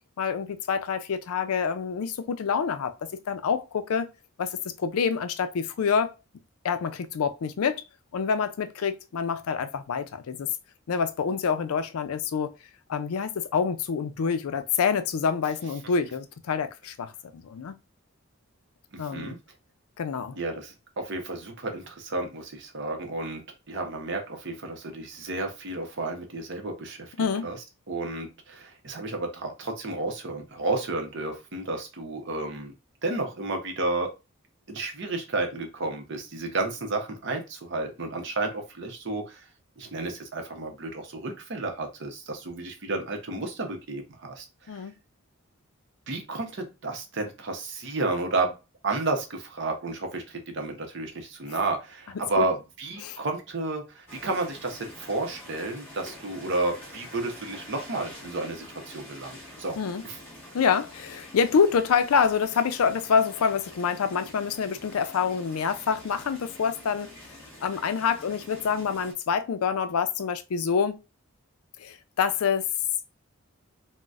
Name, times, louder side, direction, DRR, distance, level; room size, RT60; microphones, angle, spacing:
voice 1, 0.2-4.1 4.4-6.1 6.6-7.8 8.1-10.5 10.9-12.5 12.9-17.8 19.0-19.3 20.0-20.4 27.2-27.5 44.7-44.9 52.4-52.5 53.0-53.2 59.8-60.0 60.5-67.1 67.6-71.0 71.8-72.7, left 6 dB, 85° left, 0.4 m, -27 dB
voice 2, 18.9-19.4 20.4-27.6 27.9-32.7 33.0-34.1 34.7-39.5 39.8-44.8 46.1-48.6 48.8-59.8 60.0-60.2, right 2 dB, 55° right, 0.7 m, -32 dB
sound 1, 54.1-69.1, left 1 dB, 10° left, 1.1 m, -46 dB
3.8 x 2.1 x 2.4 m
head